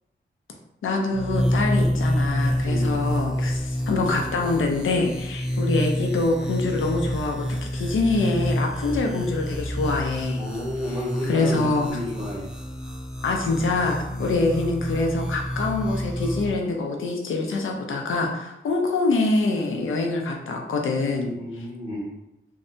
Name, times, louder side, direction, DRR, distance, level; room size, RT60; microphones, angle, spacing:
voice 1, 0.8-10.4 11.3-11.9 13.2-21.3, left 3 dB, 85° left, 2 dB, 0.5 m, -25 dB
sound 1, 1.1-16.5, equal, 5° right, 0.3 m, -28 dB
voice 2, 2.6-3.0 10.4-12.5 14.1-14.2 21.3-22.1, left 1 dB, 25° right, -6 dB, 0.8 m, -31 dB
2.6 x 2.1 x 2.6 m, 0.89 s
wide cardioid pair, 125°, 20 cm